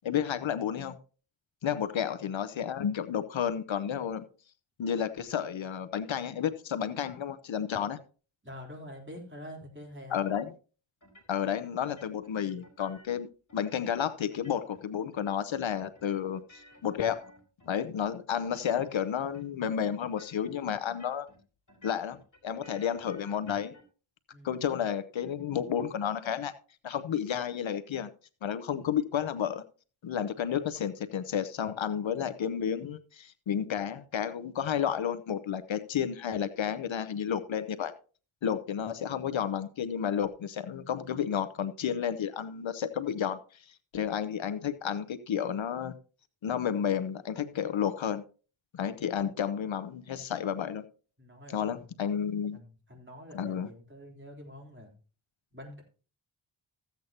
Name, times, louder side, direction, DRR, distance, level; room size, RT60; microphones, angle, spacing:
voice 1, 0.0-1.0 1.6-4.2 4.8-8.0 10.1-10.5 11.3-17.3 17.6-21.3 21.8-22.2 22.4-23.7 24.4-26.5 26.8-28.1 28.4-29.6 30.0-37.9 38.4-43.4 43.9-45.9 46.4-48.2 48.7-50.8 51.5-52.6 53.3-53.7, left 8 dB, 65° left, 0.8 m, -31 dB
voice 2, 8.4-10.2 24.3-24.6 51.2-52.1 52.5-54.9 55.5-55.8, left 1 dB, 25° right, 3.6 m, -47 dB
sound 1, 11.0-11.6 11.8-13.2 13.5-14.0 14.3-14.9 15.1-15.7 16.0-18.2 18.4-18.9 19.2-19.7 20.0-20.5 20.9-21.4 21.7-23.8, equal, 35° left, 3.1 m, -57 dB
14.5 x 8.2 x 2.9 m
wide cardioid pair, 90°, 49 cm